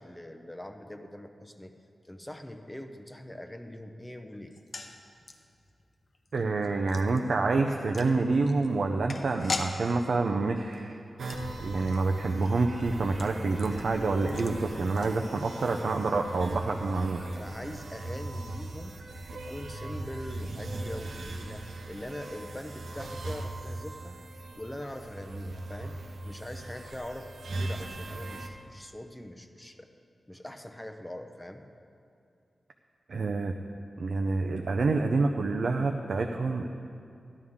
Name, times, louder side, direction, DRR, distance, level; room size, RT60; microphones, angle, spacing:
voice 1, 0.0-1.7 2.0-4.5 17.1-19.0 19.3-24.2 24.5-26.0 26.2-29.9 30.3-31.6, left 1 dB, 10° left, 6 dB, 0.6 m, -42 dB
sound 1, 4.5-15.7 15.9-16.0 16.3-16.5, left 3 dB, 50° left, 0.7 m, -42 dB
voice 2, 6.3-11.0 11.6-17.2 33.1-33.5 34.0-36.7, right 3 dB, 65° right, 3 dB, 0.5 m, -27 dB
sound 2, 11.2-28.5, right 2 dB, 85° right, 0.9 m, -39 dB
14.0 x 11.0 x 3.6 m, 2.5 s
wide cardioid pair, 150°, 0 cm